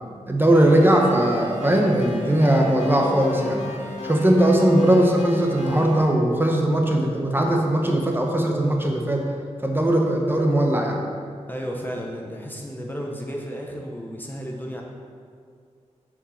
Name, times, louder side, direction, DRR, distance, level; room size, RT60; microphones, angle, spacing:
voice 1, 0.3-3.7 4.0-9.2 9.6-11.0, right 1 dB, 20° right, 1 dB, 1.0 m, -19 dB
sound 1, 0.5-6.0, left 2 dB, 85° left, 1.7 m, -35 dB
voice 2, 11.5-14.8, equal, 15° left, -1 dB, 0.9 m, -33 dB
7.1 x 5.1 x 7.1 m, 2.1 s
wide cardioid pair, 115°, 12 cm